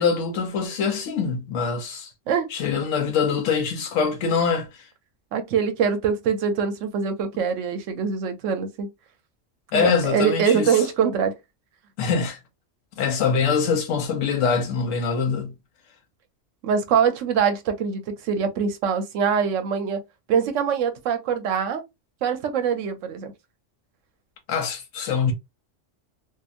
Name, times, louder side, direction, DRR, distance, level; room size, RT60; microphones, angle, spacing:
voice 1, 0.0-2.1 2.5-4.9 9.7-10.8 12.0-12.4 13.0-15.5 24.5-25.3, left 6 dB, 85° left, 1.0 m, -24 dB
voice 2, 5.3-8.9 9.7-11.3 16.6-20.0 20.3-21.8 22.2-23.3, right 6 dB, 80° right, 1.0 m, -23 dB
2.8 x 2.3 x 2.4 m
omnidirectional pair, 1.3 m